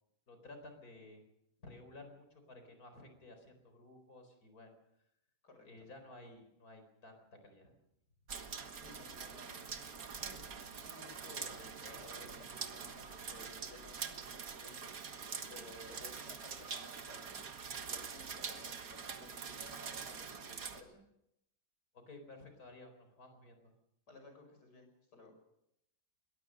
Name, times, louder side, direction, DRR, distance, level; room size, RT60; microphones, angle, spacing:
voice 1, 0.3-1.2 1.6-4.7 5.6-7.7 22.1-23.7, left 2 dB, 65° left, 6 dB, 4.9 m, -54 dB
voice 2, 5.4-5.9 8.7-9.7 10.2-17.4 17.8-21.0 24.1-25.3, left 2 dB, 90° left, 5 dB, 6.4 m, -57 dB
sound 1, 8.3-20.8, right 5 dB, 65° right, 1.9 m, -45 dB
22.5 x 18.5 x 6.5 m, 0.80 s
omnidirectional pair, 1.7 m